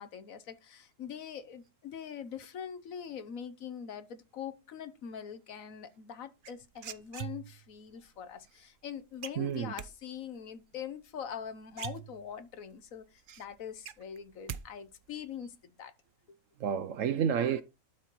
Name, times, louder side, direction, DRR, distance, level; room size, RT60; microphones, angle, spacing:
voice 1, 0.0-15.9 16.3-16.4, left 8 dB, 65° left, 1.3 m, -43 dB
sound 1, 6.4-7.7 9.2-9.9 11.3-11.4 11.7-12.5 13.0-13.1 13.4-14.6 14.9-15.4, right 10 dB, 85° right, 0.4 m, -42 dB
voice 2, 9.4-9.7 13.3-13.4 16.6-17.6, right 8 dB, 65° right, 0.9 m, -30 dB
12.0 x 4.3 x 4.5 m
omnidirectional pair, 1.6 m